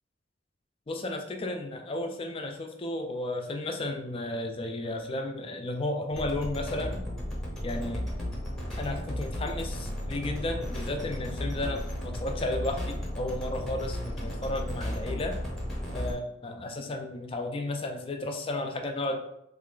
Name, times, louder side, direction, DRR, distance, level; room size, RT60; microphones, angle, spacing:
voice 1, 0.9-7.0 7.6-8.1 8.8-15.4 15.9-19.2, left 2 dB, 30° left, 4 dB, 0.4 m, -33 dB
sound 1, 6.1-16.1, equal, ahead, 0.8 m, -34 dB
3.2 x 2.4 x 3.7 m, 0.78 s
head